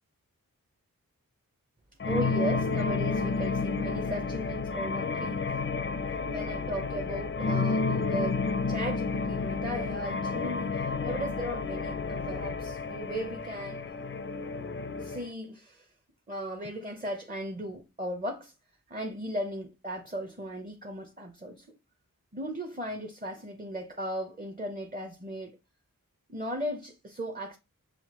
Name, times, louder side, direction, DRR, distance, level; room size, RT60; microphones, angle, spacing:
sound 1, 2.0-15.3, left 4 dB, 35° left, 0.4 m, -31 dB
voice 1, 2.1-5.5 6.3-13.9 15.0-15.9 16.3-18.5 18.9-21.7 22.3-25.6 26.3-27.6, equal, 25° right, 0.7 m, -36 dB
5.7 x 2.4 x 2.9 m
wide cardioid pair, 45°, 35 cm